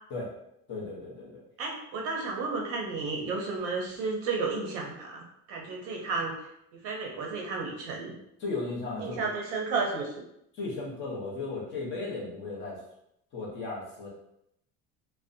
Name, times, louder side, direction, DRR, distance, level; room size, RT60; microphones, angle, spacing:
voice 1, 0.7-1.4 3.2-3.3 8.4-9.4 10.5-12.8 13.3-14.1, left 3 dB, 40° left, -4 dB, 0.7 m, -36 dB
voice 2, 1.6-6.4 6.8-8.1 9.0-10.2, right 4 dB, 50° right, 0 dB, 0.5 m, -32 dB
2.5 x 2.1 x 2.5 m, 0.77 s
cardioid pair, 175°, 30 cm